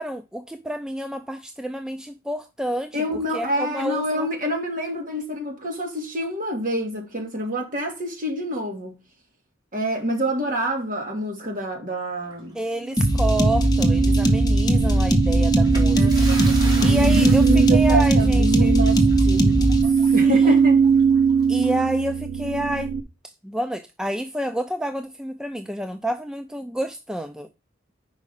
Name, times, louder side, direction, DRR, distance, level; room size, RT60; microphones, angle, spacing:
voice 1, 0.0-4.3 12.5-18.8 19.8-20.6 21.5-22.9 23.4-27.5, right 1 dB, 5° right, 0.4 m, -29 dB
voice 2, 2.9-9.0 9.7-12.6 16.0-16.5 16.8-19.7 20.1-20.8, equal, 45° right, 2.1 m, -27 dB
sound 1, 12.3-13.8 14.2-14.3 15.6-22.1, right 2 dB, 20° right, 2.1 m, -40 dB
sound 2, 12.9-23.0, right 6 dB, 70° right, 0.8 m, -20 dB
sound 3, 13.0-19.8, equal, 20° left, 1.1 m, -20 dB
5.3 x 4.9 x 5.4 m
head